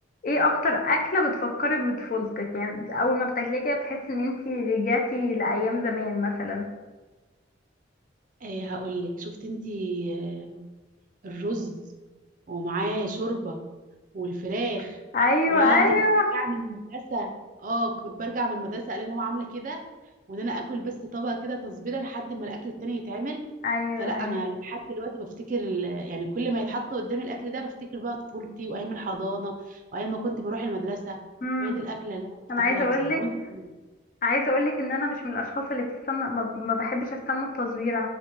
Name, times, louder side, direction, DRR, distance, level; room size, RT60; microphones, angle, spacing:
voice 1, 0.2-6.7 15.1-16.3 23.6-24.4 31.4-31.7 32.5-33.2 34.2-38.1, left 2 dB, 45° left, 2 dB, 0.5 m, -25 dB
voice 2, 8.4-10.6 11.2-11.8 12.5-13.6 14.1-15.0 15.5-15.9 16.3-17.3 17.6-19.8 20.3-23.4 24.0-31.2 31.6-32.4 32.7-33.7, right 2 dB, 45° right, 3 dB, 0.4 m, -31 dB
5.9 x 2.1 x 2.9 m, 1.2 s
head